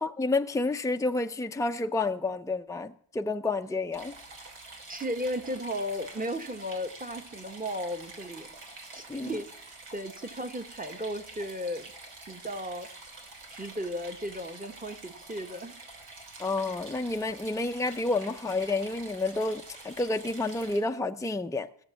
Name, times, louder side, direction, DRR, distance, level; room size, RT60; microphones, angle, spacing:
voice 1, 0.0-4.1 9.1-9.4 16.4-21.7, left 3 dB, 5° left, 0.6 m, -30 dB
sound 1, 3.9-20.8, right 3 dB, 85° right, 3.2 m, -47 dB
voice 2, 4.9-8.5 8.9-9.5 9.9-11.9 12.3-12.9 13.5-15.7, equal, 20° right, 1.2 m, -35 dB
16.0 x 6.7 x 7.1 m
cardioid pair, 55°, 47 cm